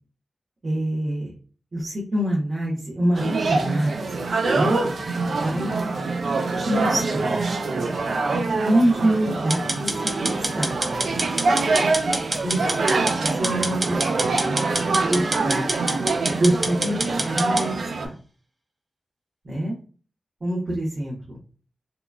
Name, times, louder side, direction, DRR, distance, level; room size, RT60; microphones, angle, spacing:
voice 1, 0.6-1.3 1.7-4.1 4.5-4.8 5.2-5.8 6.6-7.4 8.6-10.8 12.4-14.4 14.9-18.1 19.4-19.8 20.4-21.4, right 1 dB, 60° right, -5 dB, 1.0 m, -26 dB
sound 1, 3.1-18.1, right 3 dB, 75° right, 0.4 m, -25 dB
sound 2, 9.5-17.7, right 1 dB, 40° right, 0.8 m, -27 dB
2.8 x 2.4 x 2.3 m, 0.39 s
cardioid pair, 45°, 0 cm